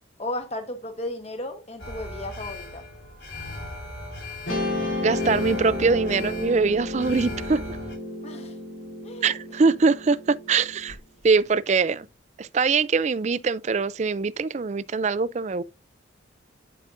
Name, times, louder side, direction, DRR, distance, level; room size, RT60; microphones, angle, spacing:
voice 1, 0.2-2.8 8.2-8.5 9.0-9.3, left 1 dB, 35° left, 1.0 m, -34 dB
Alarm, 1.8-7.9, left 2 dB, 60° left, 4.0 m, -38 dB
Guitar, 4.5-10.9, left 2 dB, 85° left, 4.1 m, -32 dB
voice 2, 5.0-7.8 9.2-11.0 11.2-12.1 12.4-15.6, right 4 dB, 35° right, 0.4 m, -23 dB
12.0 x 5.0 x 2.6 m
head